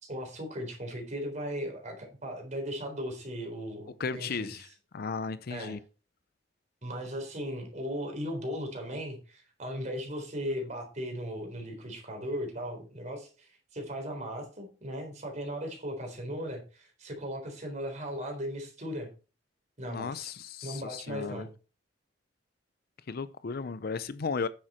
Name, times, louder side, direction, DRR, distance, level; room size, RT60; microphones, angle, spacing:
voice 1, 0.0-4.6 5.5-5.8 6.8-19.1 19.8-20.3 20.6-21.5, equal, 40° right, 4.0 m, -37 dB
voice 2, 4.0-4.7 4.9-5.8 19.8-21.5 23.1-24.5, left 5 dB, 55° left, 0.5 m, -35 dB
10.0 x 7.6 x 4.4 m
head